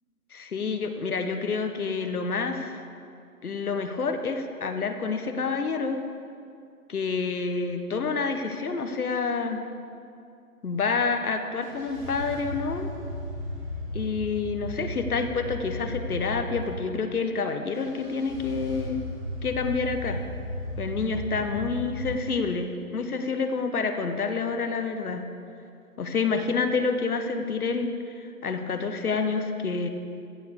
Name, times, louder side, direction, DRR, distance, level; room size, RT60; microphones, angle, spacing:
voice 1, 0.3-2.8 3.4-6.0 6.9-9.6 10.6-12.9 13.9-19.0 19.4-20.2 20.8-25.2 26.0-27.9 28.4-29.9, left 4 dB, 70° left, 7 dB, 1.1 m, -28 dB
sound 1, 11.6-16.6 17.7-22.1, left 1 dB, 10° right, 2.0 m, -35 dB
14.5 x 5.2 x 6.7 m, 2.5 s
figure-of-eight pair, 150°, 47 cm